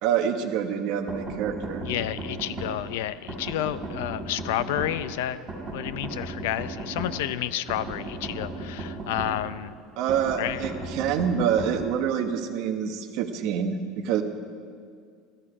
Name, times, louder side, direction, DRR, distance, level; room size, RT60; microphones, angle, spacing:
voice 1, 0.0-1.8 10.0-14.2, right 8 dB, 50° right, 6 dB, 1.0 m, -26 dB
sound 1, 1.1-2.7 3.3-4.9 5.5-7.1 7.7-9.3 10.1-11.7, right 2 dB, 10° right, 4.3 m, -35 dB
voice 2, 1.8-5.4 5.7-9.7 10.4-10.6, left 12 dB, 85° left, 14 dB, 0.5 m, -30 dB
15.0 x 14.0 x 4.9 m, 2.1 s
cardioid pair, 175°, 0 cm